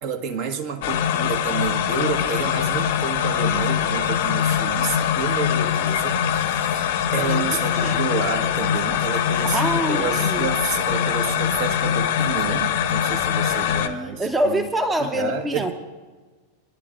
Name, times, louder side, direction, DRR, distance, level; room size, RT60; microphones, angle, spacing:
voice 1, 0.0-14.6 15.0-15.7, right 6 dB, 45° right, 4 dB, 1.3 m, -30 dB
sound 1, 0.8-13.9, left 9 dB, 50° left, 0.9 m, -23 dB
voice 2, 7.2-8.0 9.5-10.5 13.7-15.7, right 1 dB, 10° right, 7 dB, 0.9 m, -26 dB
22.5 x 11.5 x 2.5 m, 1.4 s
figure-of-eight pair, 90°, 0 cm